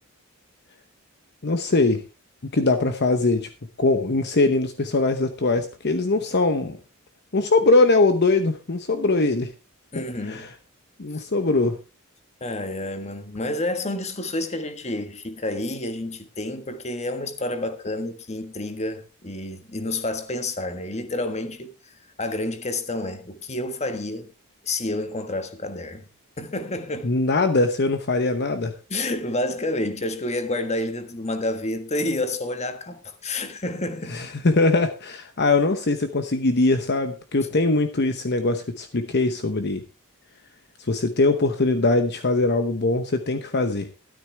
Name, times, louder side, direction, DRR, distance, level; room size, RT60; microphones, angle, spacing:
voice 1, 1.4-2.0 2.5-3.5 3.8-6.8 7.3-9.5 9.9-10.5 11.0-11.8 27.0-28.7 34.1-39.8 40.8-43.9, left 2 dB, 50° left, 0.9 m, -21 dB
voice 2, 9.9-10.5 11.1-11.3 12.4-21.7 22.2-24.3 24.6-26.1 26.4-27.1 28.9-34.2, left 2 dB, 30° left, 1.5 m, -29 dB
13.0 x 13.0 x 3.4 m
head